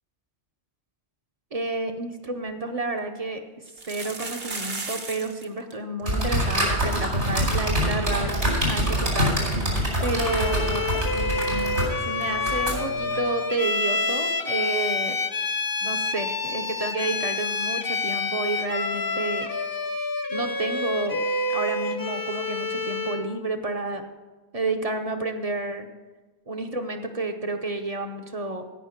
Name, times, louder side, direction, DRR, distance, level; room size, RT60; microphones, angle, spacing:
voice 1, 1.5-3.4 3.9-9.4 10.0-10.9 11.1-11.8 12.0-15.2 15.8-19.5 20.3-21.2 21.5-24.0 24.5-25.9 26.5-28.6, right 2 dB, 35° right, 5 dB, 0.9 m, -30 dB
sound 1, 2.1-2.2 2.5-2.6 3.7-5.4 5.7-5.8 6.0-6.3 6.8-6.9 7.2-7.3 9.3-9.4, right 3 dB, 60° right, 1.5 m, -35 dB
sound 2, 6.0-13.2, equal, 80° right, 3.9 m, -25 dB
Bowed string instrument, 10.1-23.3, left 3 dB, 25° left, 0.5 m, -28 dB
16.5 x 5.7 x 5.8 m, 1.2 s
omnidirectional pair, 1.1 m